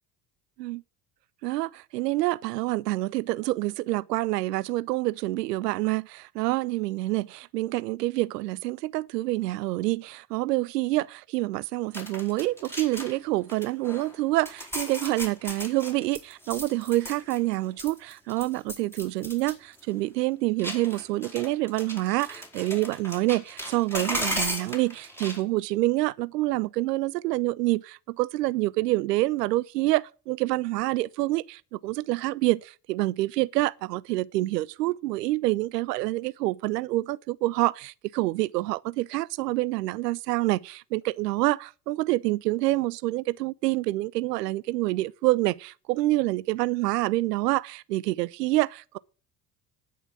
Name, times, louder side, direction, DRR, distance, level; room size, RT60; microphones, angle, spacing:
voice 1, 1.4-49.0, right 18 dB, 80° right, 0.7 m, -27 dB
sound 1, 11.9-13.2 13.5-14.2 14.5-17.5 17.8-19.5 19.8-19.9 20.6-25.4, equal, 5° left, 4.2 m, -36 dB
10.5 x 6.8 x 8.4 m
hypercardioid pair, 60°, 48 cm